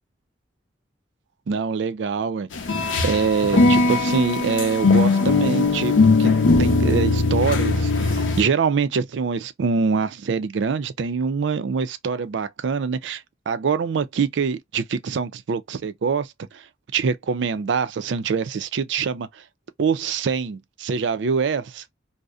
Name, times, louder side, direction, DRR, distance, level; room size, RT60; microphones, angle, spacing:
voice 1, 1.5-2.5 3.0-5.9 6.2-6.3 6.6-16.3 16.5-16.6 16.9-19.4 19.8-21.8, right 5 dB, 70° right, 0.4 m, -24 dB
sound 1, 2.5-8.4, left 3 dB, 80° left, 0.5 m, -19 dB
2.6 x 2.0 x 2.3 m
head